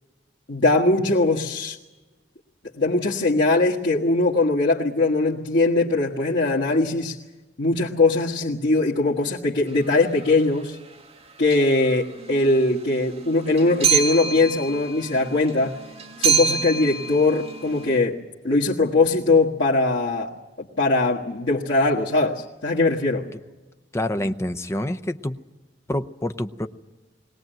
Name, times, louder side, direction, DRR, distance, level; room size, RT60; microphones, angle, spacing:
voice 1, 0.5-1.8 2.8-7.1 7.6-10.8 11.4-15.8 16.2-18.2 18.4-20.3 20.6-23.3, left 2 dB, 85° left, -6 dB, 1.6 m, -21 dB
sound 1, 10.2-10.4 11.5-11.9 12.2-18.0, right 6 dB, 35° right, 1.6 m, -27 dB
voice 2, 23.9-25.4 25.9-26.7, left 1 dB, 15° left, 9 dB, 0.7 m, -27 dB
21.5 x 18.0 x 9.1 m, 1.2 s
head